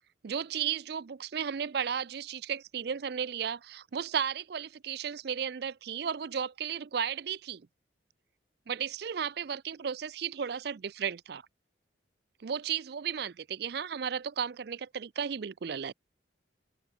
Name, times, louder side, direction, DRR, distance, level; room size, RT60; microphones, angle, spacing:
voice 1, 0.2-7.7 8.7-11.4 12.4-15.9, right 7 dB, 55° right, 0.4 m, -34 dB
head